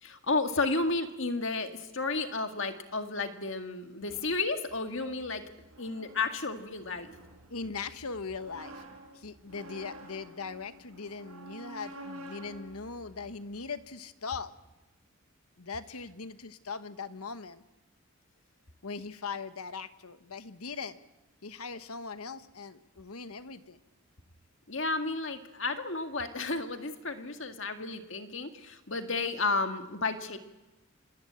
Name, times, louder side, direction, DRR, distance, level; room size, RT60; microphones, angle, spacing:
voice 1, 0.0-5.4 5.8-7.1 24.7-30.4, left 3 dB, 60° left, 6 dB, 2.0 m, -32 dB
sound 1, 4.0-14.0, right 1 dB, 90° right, 5.1 m, -50 dB
voice 2, 7.5-8.8 9.1-14.5 15.6-17.6 18.8-21.0 21.4-23.8, left 5 dB, 85° left, 11 dB, 1.3 m, -40 dB
27.5 x 21.5 x 8.7 m, 1.1 s
head